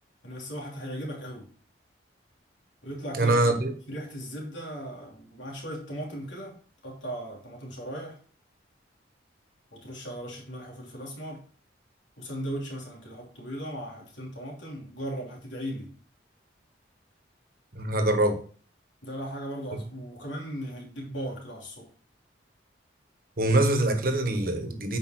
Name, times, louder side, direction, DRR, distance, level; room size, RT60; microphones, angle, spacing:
voice 1, 0.2-1.5 2.8-3.6 3.9-6.6 6.8-8.2 9.7-11.4 12.2-15.9 19.0-21.9, equal, 85° left, 3.1 m, -37 dB
voice 2, 3.1-3.7 17.7-18.4 23.4-25.0, right 2 dB, 50° right, 1.3 m, -24 dB
8.4 x 5.4 x 4.3 m
head